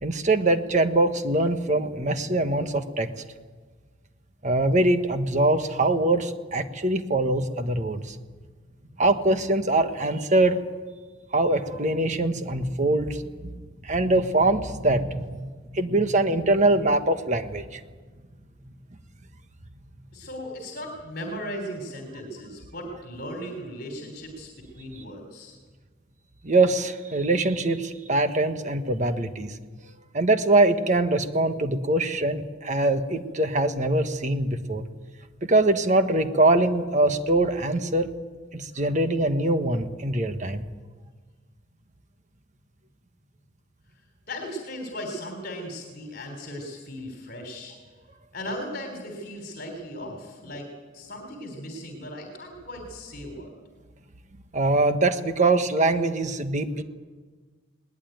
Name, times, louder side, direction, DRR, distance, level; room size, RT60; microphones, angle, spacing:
voice 1, 0.0-3.1 4.4-8.1 9.0-10.6 11.3-13.2 13.8-15.4 15.7-17.8 26.4-29.6 30.1-34.8 35.4-38.1 38.5-40.6 54.5-56.8, right 2 dB, 40° right, 8 dB, 1.4 m, -23 dB
voice 2, 20.1-24.5 24.8-25.6 44.3-47.8 48.3-50.7 50.9-53.5, equal, 50° left, 4 dB, 3.5 m, -37 dB
21.0 x 19.5 x 9.2 m, 1.4 s
head